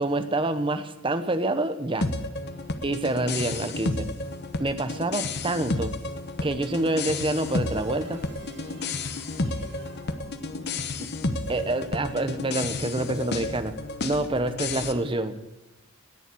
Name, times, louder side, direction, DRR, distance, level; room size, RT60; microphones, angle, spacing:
voice 1, 0.0-2.1 2.8-4.1 4.6-5.9 6.4-8.2 11.0-11.1 11.5-15.4, right 2 dB, 25° right, 10 dB, 0.9 m, -27 dB
sound 1, 2.0-14.9, left 2 dB, 50° left, 1.0 m, -31 dB
sound 2, 6.6-10.9, equal, 60° right, 5.8 m, -49 dB
19.0 x 7.1 x 8.5 m, 1.0 s
head